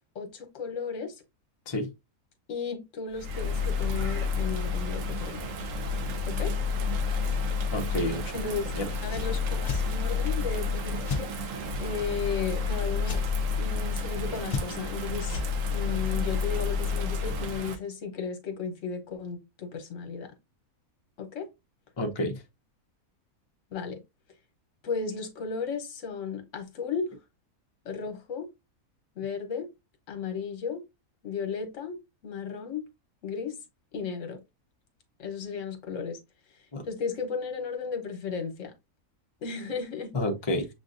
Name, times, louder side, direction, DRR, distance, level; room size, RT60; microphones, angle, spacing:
voice 1, 0.1-1.2 2.5-5.4 6.2-6.5 8.3-8.7 9.0-11.3 11.8-13.2 13.6-15.4 15.7-20.3 21.2-21.5 23.7-24.0 24.8-27.1 27.8-28.5 29.2-29.7 30.1-30.8 31.2-32.0 32.2-32.8 33.2-33.6 33.9-34.4 35.2-36.2 36.8-38.7 39.4-40.1, left 5 dB, 60° left, 1.3 m, -34 dB
Bird vocalization bird call bird song / Rain, 3.1-17.7, left 4 dB, 65° right, 1.0 m, -30 dB
voice 2, 7.7-8.3 8.8-8.9 22.0-22.4 36.7-36.8 40.1-40.7, left 1 dB, 30° left, 0.5 m, -29 dB
sound 1, 9.1-9.2 9.6-9.8 11.1-11.2 13.0-13.2 14.5-14.9 15.3-15.5, left 4 dB, 90° left, 0.3 m, -31 dB
6.8 x 2.5 x 2.5 m
omnidirectional pair, 1.6 m